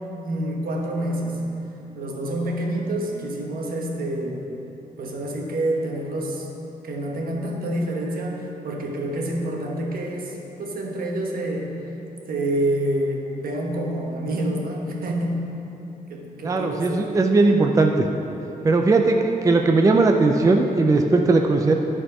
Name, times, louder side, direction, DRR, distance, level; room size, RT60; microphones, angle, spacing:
voice 1, 0.0-1.4 1.9-4.4 5.0-6.5 6.8-11.7 12.3-15.5 16.1-17.1, right 1 dB, 75° right, 0 dB, 1.2 m, -27 dB
voice 2, 16.4-17.9 18.6-21.7, right 3 dB, 20° right, 3 dB, 0.4 m, -18 dB
13.0 x 4.4 x 4.9 m, 3.0 s
wide cardioid pair, 145°, 15 cm